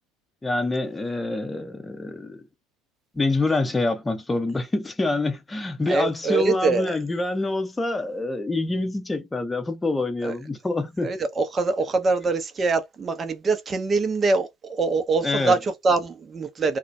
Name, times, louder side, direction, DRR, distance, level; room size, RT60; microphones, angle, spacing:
voice 1, 0.4-2.4 3.1-11.1 15.2-15.5, left 2 dB, 15° left, 0.7 m, -26 dB
voice 2, 5.9-7.0 10.2-10.3 11.0-16.8, right 3 dB, 30° right, 0.7 m, -24 dB
2.4 x 2.2 x 2.6 m
figure-of-eight pair, 65°, 0 cm